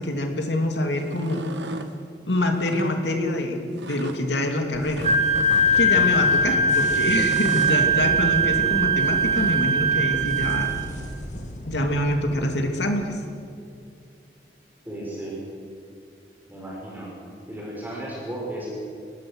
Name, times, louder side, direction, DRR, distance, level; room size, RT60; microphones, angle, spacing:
voice 1, 0.0-1.4 2.3-5.0 5.8-10.8 11.7-13.2, left 1 dB, 80° left, 3 dB, 2.8 m, -25 dB
sound 1, 1.0-1.9 2.6-2.9 3.8-4.2 4.9-5.9 7.1-7.8 9.0-9.7, right 2 dB, 85° right, 1.5 m, -35 dB
sound 2, 4.7-12.4, left 1 dB, 40° left, 2.6 m, -36 dB
Wind instrument woodwind instrument, 5.0-10.8, right 2 dB, 40° right, 1.7 m, -21 dB
voice 2, 14.9-15.4 16.5-17.1 17.5-18.7, right 1 dB, 10° right, -5 dB, 5.3 m, -34 dB
24.5 x 19.0 x 6.5 m, 2.4 s
head